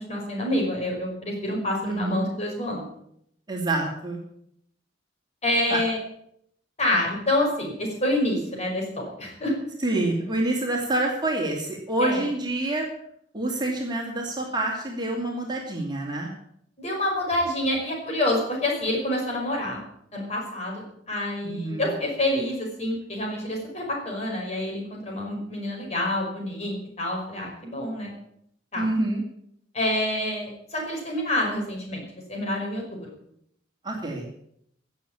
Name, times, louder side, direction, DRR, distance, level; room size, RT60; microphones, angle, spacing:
voice 1, 0.0-2.9 5.4-6.0 6.8-9.5 12.0-12.2 16.8-19.8 20.1-28.1 28.7-28.9 29.7-33.1, left 1 dB, 35° left, -1 dB, 5.6 m, -27 dB
voice 2, 1.8-2.2 3.5-4.2 5.7-5.8 9.8-12.9 13.3-16.3 21.4-21.9 28.8-29.2 33.8-34.3, right 2 dB, 20° right, 0 dB, 2.7 m, -27 dB
17.5 x 7.3 x 8.6 m, 0.72 s
head